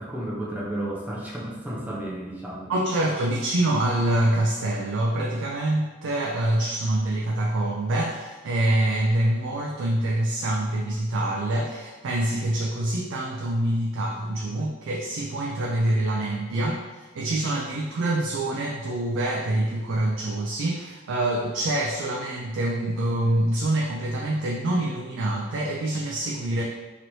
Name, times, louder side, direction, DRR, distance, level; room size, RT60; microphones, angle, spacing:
voice 1, 0.0-2.7, right 1 dB, 10° right, -5 dB, 0.5 m, -32 dB
voice 2, 2.7-26.6, right 1 dB, 80° right, -2 dB, 0.4 m, -25 dB
3.0 x 2.9 x 2.7 m, 1.2 s
head